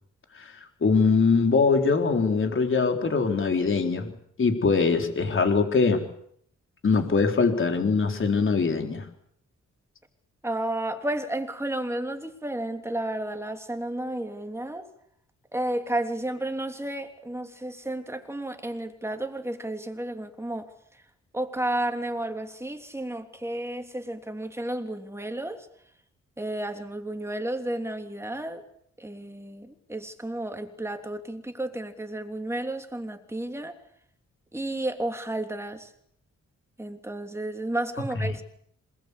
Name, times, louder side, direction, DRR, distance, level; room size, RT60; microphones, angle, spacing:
voice 1, 0.8-4.1 4.4-6.0 6.8-9.1, left 4 dB, 45° left, 5 dB, 4.1 m, -22 dB
voice 2, 10.4-14.9 15.5-20.7 21.3-25.7 26.4-28.6 29.0-33.8 34.5-35.9 36.8-38.4, right 1 dB, 10° right, 5 dB, 3.2 m, -32 dB
27.0 x 20.5 x 8.5 m, 0.66 s
wide cardioid pair, 165°, 29 cm